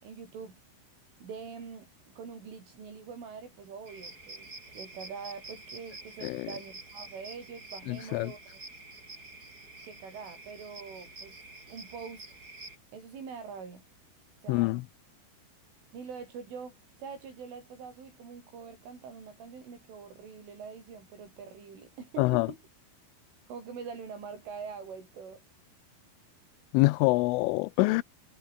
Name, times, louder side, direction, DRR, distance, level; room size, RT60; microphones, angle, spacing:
voice 1, 0.0-0.6 1.2-8.6 9.8-11.4 11.7-12.3 12.9-13.8 14.4-14.8 15.9-22.6 23.5-25.4, right 6 dB, 75° right, 9.2 m, -44 dB
sound 1, 3.9-12.8, right 2 dB, 20° right, 5.3 m, -48 dB
voice 2, 7.9-8.3 14.5-14.8 22.2-22.5 26.7-28.0, left 22 dB, 85° left, 3.2 m, -25 dB
omnidirectional pair, 5.7 m